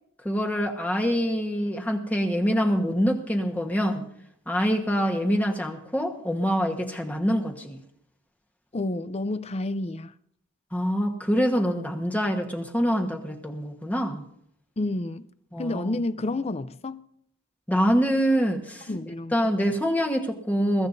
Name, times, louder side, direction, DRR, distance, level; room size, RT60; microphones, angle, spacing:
voice 1, 0.2-4.0 4.5-7.8 10.7-14.2 15.5-16.0 17.7-18.9 19.3-20.9, equal, 10° left, 1.3 m, -25 dB
voice 2, 8.7-10.1 14.8-15.3 15.6-17.0 18.9-19.3, left 2 dB, 30° left, 0.6 m, -29 dB
22.5 x 15.0 x 2.7 m
head